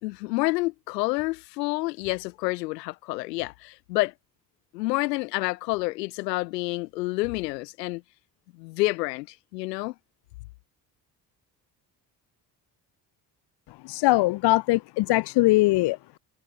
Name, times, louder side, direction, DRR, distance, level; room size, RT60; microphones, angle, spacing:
voice 1, 0.0-4.1 4.7-8.0 8.6-9.9, left 22 dB, 75° left, 1.6 m, -28 dB
voice 2, 13.9-16.2, left 19 dB, 50° left, 0.8 m, -22 dB
figure-of-eight pair, 45°, 50 cm